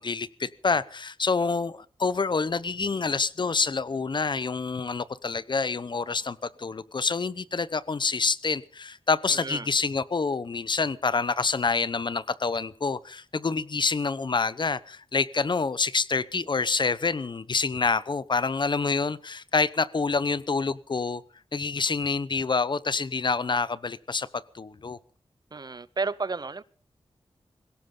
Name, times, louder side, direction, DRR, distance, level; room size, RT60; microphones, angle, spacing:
voice 1, 0.0-21.2 21.5-25.0, left 4 dB, 50° left, 0.9 m, -27 dB
voice 2, 9.3-9.7 25.5-26.6, right 4 dB, 45° right, 0.8 m, -32 dB
21.5 x 17.0 x 3.9 m
wide cardioid pair, 75°, 10 cm